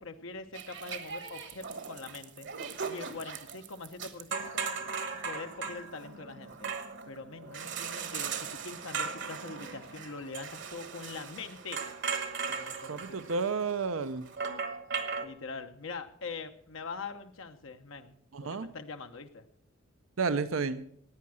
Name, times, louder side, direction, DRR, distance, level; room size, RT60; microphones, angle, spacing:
voice 1, 0.0-2.5 2.9-4.7 5.2-6.7 7.1-11.8 12.5-13.2 15.2-18.1 18.4-19.5, left 4 dB, 75° left, 7 dB, 1.0 m, -43 dB
sound 1, 0.5-15.3, right 5 dB, 60° right, 1.3 m, -38 dB
voice 2, 12.9-14.2 18.3-18.7 20.2-20.8, right 4 dB, 85° right, 13 dB, 0.7 m, -31 dB
15.5 x 9.6 x 6.3 m, 0.67 s
head